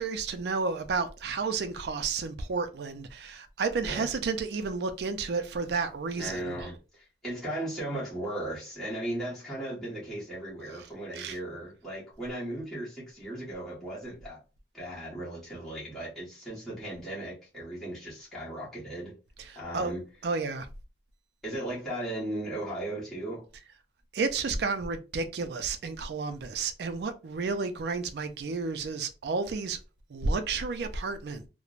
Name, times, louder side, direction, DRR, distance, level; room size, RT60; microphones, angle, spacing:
voice 1, 0.0-6.6 11.1-11.4 19.5-19.9 20.2-20.7 24.1-29.8 30.1-31.5, right 4 dB, 70° right, 0.4 m, -31 dB
voice 2, 6.2-14.4 14.7-19.1 19.5-20.0 21.4-23.5, right 1 dB, ahead, 1.2 m, -37 dB
3.1 x 2.1 x 2.4 m
head